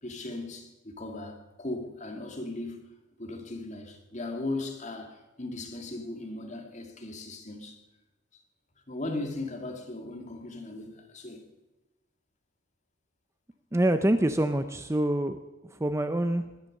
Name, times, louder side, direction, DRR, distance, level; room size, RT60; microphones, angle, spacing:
voice 1, 0.0-7.8 8.3-8.4 8.9-11.5, left 2 dB, 35° left, 2.2 m, -38 dB
voice 2, 13.7-15.4 15.6-16.4, right 1 dB, 15° right, 0.5 m, -26 dB
20.0 x 10.5 x 6.6 m
head